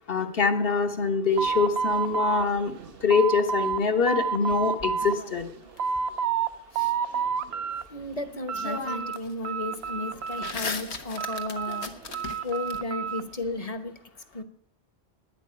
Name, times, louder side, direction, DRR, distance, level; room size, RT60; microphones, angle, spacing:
voice 1, 0.1-2.7 3.0-5.5, left 5 dB, 60° left, 6 dB, 1.6 m, -24 dB
sound 1, 1.4-3.8 4.1-5.2 5.5-6.5 6.8-7.8 8.2-9.2 9.4-10.7 11.2-13.3, right 6 dB, 70° right, 1.0 m, -29 dB
sound 2, 4.5-5.8 8.0-8.1 8.5-9.3 9.6-12.8, left 4 dB, 80° left, 1.6 m, -37 dB
voice 2, 7.9-11.9 12.4-13.9 14.3-14.4, left 2 dB, 35° left, 11 dB, 1.2 m, -34 dB
11.5 x 9.4 x 9.7 m, 0.70 s
omnidirectional pair, 1.1 m